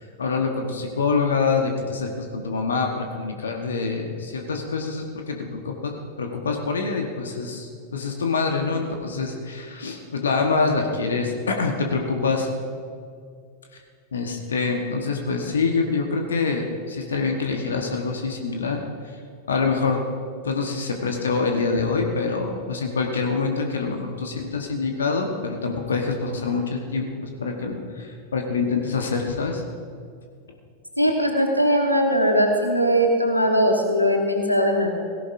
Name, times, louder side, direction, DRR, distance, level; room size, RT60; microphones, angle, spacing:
voice 1, 0.2-12.5 14.1-18.8 19.5-20.0 20.4-29.6, left 4 dB, 70° left, 3 dB, 1.3 m, -25 dB
voice 2, 31.0-34.9, equal, 90° left, 2 dB, 1.3 m, -20 dB
17.5 x 16.5 x 2.7 m, 2.2 s
figure-of-eight pair, 90°, 0 cm